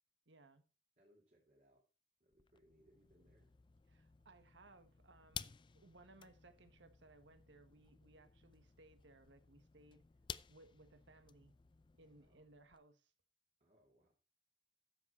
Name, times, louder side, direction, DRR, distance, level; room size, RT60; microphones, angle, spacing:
voice 1, 0.3-0.6 3.9-10.0 10.5-11.5 11.9-13.1, right 2 dB, 85° right, 1.4 m, -64 dB
voice 2, 1.0-1.9 2.2-3.5 12.2-12.5 13.6-14.1, equal, 40° right, 2.6 m, -71 dB
sound 1, 2.3-12.8, left 7 dB, 25° left, 0.4 m, -55 dB
10.5 x 7.4 x 4.3 m
head